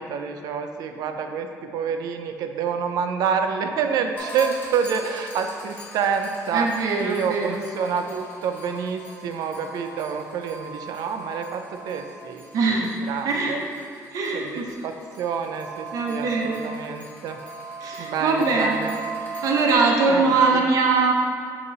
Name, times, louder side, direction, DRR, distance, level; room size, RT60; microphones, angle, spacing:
voice 1, 0.0-13.6 14.3-17.4 18.0-19.1 20.1-20.6, right 6 dB, 80° right, 6 dB, 0.5 m, -28 dB
sound 1, 4.1-19.7, right 3 dB, 30° left, 1.2 m, -39 dB
voice 2, 6.5-7.6 12.5-12.9 13.2-13.5 14.1-14.7 15.9-16.6 17.8-18.8 19.4-21.1, right 4 dB, 65° right, 0 dB, 0.9 m, -22 dB
6.6 x 3.0 x 5.3 m, 2.3 s
cardioid pair, 175°, 6 cm